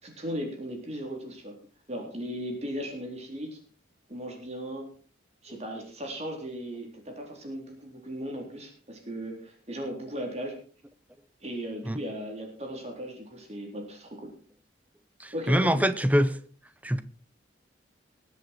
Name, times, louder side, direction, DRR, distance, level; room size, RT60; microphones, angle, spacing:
voice 1, 0.0-1.5 1.9-3.6 4.1-4.9 5.4-10.6 11.4-14.3 15.3-15.8, equal, 35° right, 3.9 m, -37 dB
voice 2, 15.2-16.4 16.8-17.0, equal, 10° right, 0.8 m, -24 dB
20.5 x 8.0 x 4.6 m
head